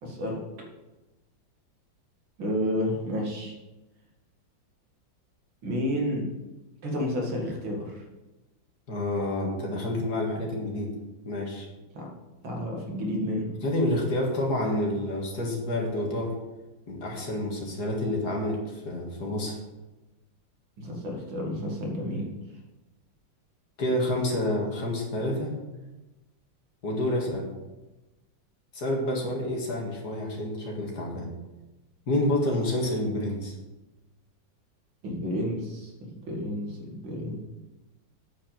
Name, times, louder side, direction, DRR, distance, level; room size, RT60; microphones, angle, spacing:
voice 1, 0.0-0.4 2.4-3.6 5.6-6.3 6.8-8.0 9.9-10.0 11.9-12.1 12.4-13.5 20.8-22.3 35.0-37.4, equal, 85° right, -1 dB, 2.8 m, -31 dB
voice 2, 8.9-10.9 11.3-11.7 13.6-16.4 16.9-19.6 23.8-25.6 26.8-27.5 28.7-31.3 32.1-33.6, left 1 dB, 55° left, 0 dB, 2.3 m, -28 dB
8.6 x 5.4 x 7.3 m, 1.1 s
omnidirectional pair, 2.1 m